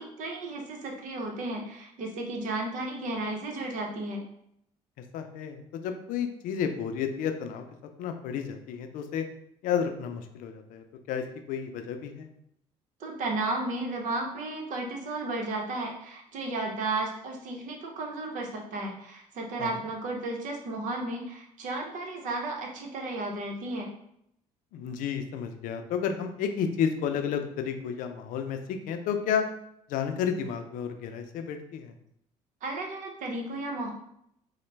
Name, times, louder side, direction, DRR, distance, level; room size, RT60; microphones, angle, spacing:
voice 1, 0.0-4.2 13.0-23.9 32.6-33.9, right 2 dB, 65° right, 2 dB, 0.9 m, -33 dB
voice 2, 5.1-7.6 8.0-9.3 9.6-12.3 19.6-19.7 24.7-29.5 29.9-31.9, left 7 dB, 75° left, 6 dB, 0.5 m, -31 dB
3.9 x 2.1 x 3.3 m, 0.74 s
supercardioid pair, 80°, 14 cm